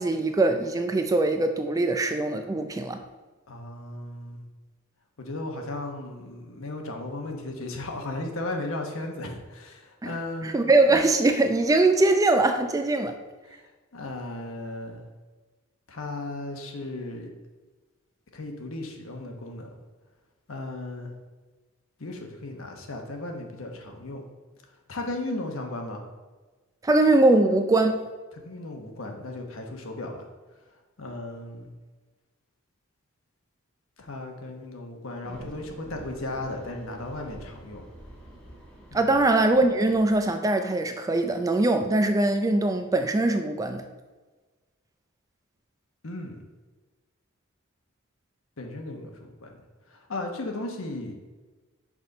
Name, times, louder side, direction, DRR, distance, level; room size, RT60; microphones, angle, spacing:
voice 1, 0.0-3.0 10.0-10.1 10.4-13.1 26.8-28.1 38.9-43.8, right 2 dB, 15° right, 7 dB, 0.3 m, -22 dB
voice 2, 3.5-4.4 5.2-10.6 13.5-13.6 13.9-15.0 15.9-17.3 18.3-19.7 20.5-21.1 22.0-24.3 24.9-26.0 28.4-30.3 31.0-31.7 34.0-37.9 38.9-39.1 46.0-46.4 48.6-49.6 49.9-51.1, left 2 dB, 70° left, 3 dB, 1.0 m, -35 dB
sound 1, 35.2-40.2, equal, 5° left, 1.1 m, -47 dB
6.1 x 4.1 x 5.1 m, 1.3 s
head